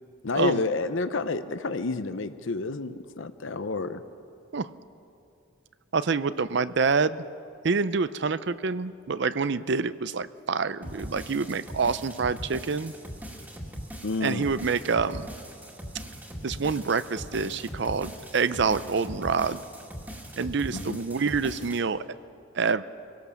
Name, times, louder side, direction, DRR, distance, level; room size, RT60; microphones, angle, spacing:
voice 1, 0.2-4.0 14.0-14.5 20.7-21.0, left 3 dB, 65° left, 12 dB, 0.7 m, -29 dB
voice 2, 5.9-7.2 7.6-12.9 14.2-15.3 16.4-19.6 20.4-22.0 22.5-22.8, right 5 dB, 55° right, 15 dB, 0.5 m, -27 dB
sound 1, 10.8-21.8, equal, 10° right, 2.0 m, -40 dB
25.0 x 17.5 x 7.1 m, 2.7 s
head